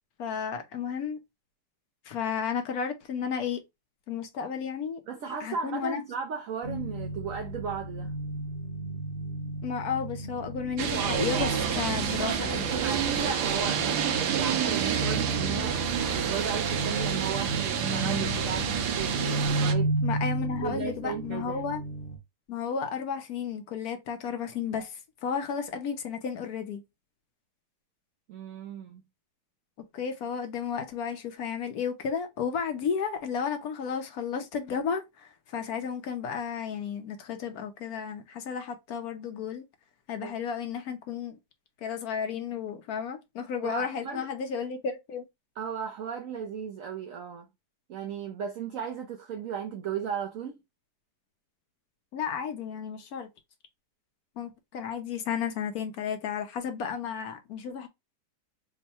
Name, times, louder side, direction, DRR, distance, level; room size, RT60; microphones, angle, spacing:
voice 1, 0.2-1.2 2.1-3.6 4.1-5.0 5.4-6.0 9.6-12.7 20.0-21.8 22.5-26.8 29.8-39.6 40.1-41.4 41.8-45.2 52.1-53.3 54.4-57.9, left 7 dB, 70° left, 1.1 m, -33 dB
voice 2, 5.1-8.1 12.7-20.0 20.6-21.6 24.7-24.8 28.3-29.0 40.2-40.3 43.6-44.3 45.6-47.5 47.9-50.5, right 7 dB, 65° right, 0.9 m, -35 dB
sound 1, 6.6-22.2, right 1 dB, 30° left, 1.0 m, -34 dB
sound 2, 10.8-19.7, right 8 dB, 80° right, 1.3 m, -28 dB
3.6 x 2.1 x 4.0 m
omnidirectional pair, 1.8 m